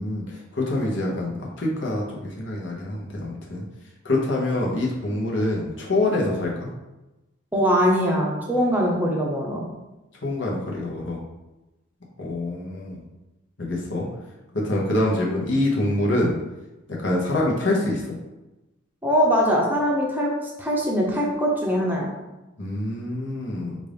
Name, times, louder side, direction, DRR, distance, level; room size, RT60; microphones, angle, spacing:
voice 1, 0.0-3.6 4.0-6.7 10.2-11.2 12.2-13.0 13.6-14.1 14.5-16.3 17.0-18.1 22.6-23.8, left 1 dB, 60° left, -2 dB, 0.9 m, -25 dB
voice 2, 7.5-9.7 19.0-20.3 20.6-22.1, equal, 10° right, -2 dB, 0.7 m, -22 dB
5.1 x 2.5 x 3.4 m, 1.0 s
head